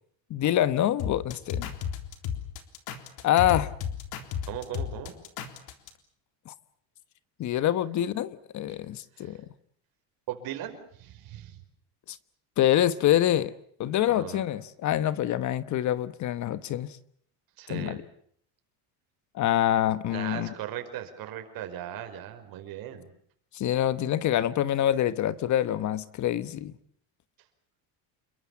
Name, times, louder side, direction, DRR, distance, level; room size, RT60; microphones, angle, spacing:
voice 1, 0.3-1.7 3.2-3.7 6.5-6.6 7.4-9.4 12.1-12.2 12.6-13.5 13.8-16.9 17.7-18.0 19.3-20.5 23.5-26.7, left 12 dB, 45° left, 1.2 m, -26 dB
sound 1, 1.0-5.9, left 8 dB, 65° left, 3.7 m, -33 dB
voice 2, 4.5-5.1 9.2-9.4 10.3-11.6 14.1-14.4 17.6-18.0 20.1-23.1, right 11 dB, 60° right, 5.2 m, -38 dB
28.5 x 22.5 x 7.1 m
cardioid pair, 150°, 40 cm